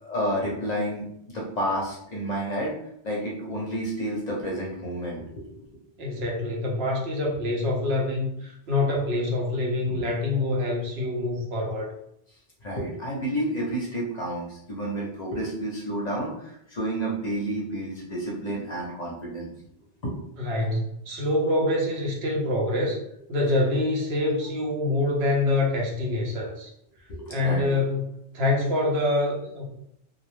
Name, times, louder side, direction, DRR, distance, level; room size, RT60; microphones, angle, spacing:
voice 1, 0.0-2.7 3.0-5.5 9.9-10.0 12.6-19.5 20.0-20.2 27.1-27.7, right 1 dB, 45° left, -3 dB, 0.6 m, -30 dB
voice 2, 6.0-11.9 20.4-23.0 23.3-26.7 27.3-29.7, left 2 dB, 70° right, -2 dB, 1.0 m, -26 dB
2.5 x 2.0 x 3.1 m, 0.75 s
omnidirectional pair, 1.1 m